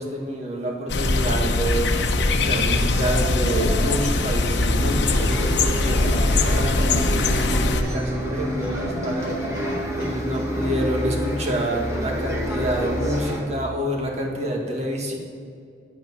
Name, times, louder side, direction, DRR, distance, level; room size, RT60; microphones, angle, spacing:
voice 1, 0.0-9.5 10.0-15.2, equal, 40° right, 0 dB, 1.9 m, -28 dB
sound 1, 0.9-7.8, left 2 dB, 75° left, 0.9 m, -21 dB
sound 2, 2.9-5.2 5.8-8.2 8.6-10.8 11.9-12.1, right 1 dB, 75° right, 3.0 m, -36 dB
Bus, 5.1-13.4, equal, 20° right, 1.8 m, -29 dB
10.5 x 8.8 x 5.6 m, 2.3 s
head